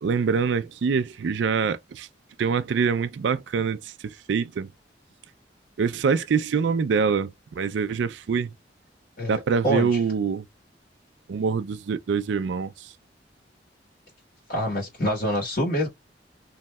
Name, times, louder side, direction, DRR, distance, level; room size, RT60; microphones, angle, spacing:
voice 1, 0.0-2.1 2.4-4.7 5.8-7.3 7.6-8.5 9.3-10.4 11.3-12.9, right 5 dB, 85° right, 0.4 m, -25 dB
voice 2, 9.2-10.0 14.5-15.9, equal, 55° left, 1.3 m, -26 dB
3.1 x 2.7 x 2.2 m
head